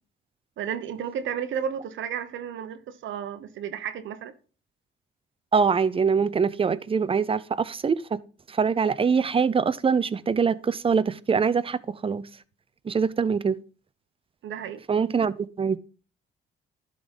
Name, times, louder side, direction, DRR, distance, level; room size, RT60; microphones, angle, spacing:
voice 1, 0.6-4.3 14.4-14.8, right 8 dB, 75° right, 0.9 m, -32 dB
voice 2, 5.5-8.2 8.5-12.2 12.8-13.6 14.9-15.8, right 6 dB, 30° right, 0.5 m, -24 dB
11.5 x 3.9 x 5.3 m
cardioid pair, 90°, 20 cm